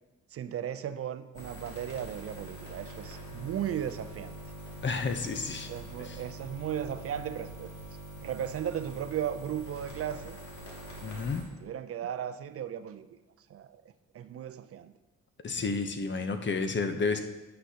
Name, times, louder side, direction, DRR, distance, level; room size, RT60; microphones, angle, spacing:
voice 1, 0.3-4.4 5.7-7.7 8.2-10.4 11.5-13.1 13.5-13.8 14.1-14.9, right 9 dB, 50° right, 12 dB, 0.5 m, -36 dB
sound 1, 1.3-11.4, right 1 dB, 70° left, 2.4 m, -44 dB
voice 2, 4.8-5.7 6.0-6.2 11.0-11.5 15.4-17.2, left 4 dB, 40° left, 8 dB, 0.8 m, -31 dB
9.7 x 7.8 x 2.8 m, 1.1 s
cardioid pair, 90°, 30 cm